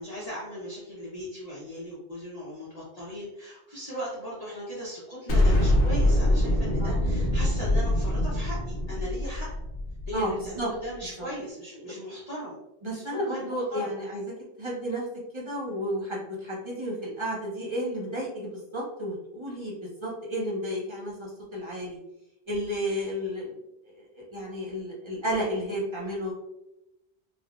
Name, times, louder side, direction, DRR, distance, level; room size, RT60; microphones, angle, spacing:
voice 1, 0.0-9.5 10.1-12.6 12.9-13.9, equal, 40° left, -7 dB, 0.7 m, -38 dB
Explosion, 5.3-10.5, left 1 dB, 85° left, 1.1 m, -24 dB
voice 2, 10.1-10.7 11.2-11.3 12.8-14.2 14.6-15.0 15.3-22.0 22.5-23.6 23.9-26.3, equal, 30° right, -5 dB, 0.8 m, -32 dB
3.5 x 2.2 x 2.3 m, 0.93 s
omnidirectional pair, 1.1 m